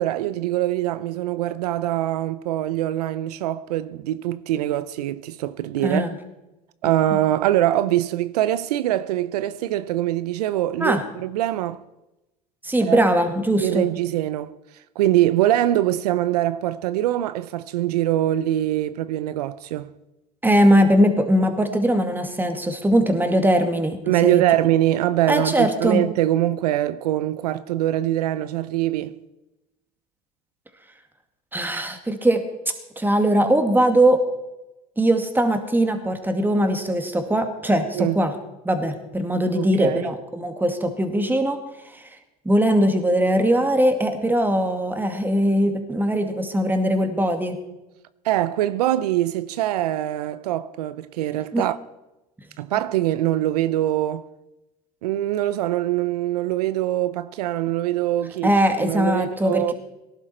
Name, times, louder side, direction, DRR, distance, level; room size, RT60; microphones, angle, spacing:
voice 1, 0.0-6.0 6.8-11.8 12.8-13.0 13.6-19.9 24.1-29.2 37.9-38.2 39.5-40.1 48.2-51.8 52.6-54.3 55.0-58.5 58.8-59.7, right 13 dB, 85° right, 0.6 m, -23 dB
voice 2, 5.8-6.1 10.8-11.0 12.6-13.9 20.4-24.4 25.3-26.0 31.5-32.4 33.0-34.2 35.0-38.3 38.6-41.6 41.8-42.2 42.4-47.6 51.5-51.6 58.4-59.7, right 1 dB, 10° right, 2.2 m, -20 dB
18.5 x 11.5 x 4.4 m
hypercardioid pair, 85°, 20 cm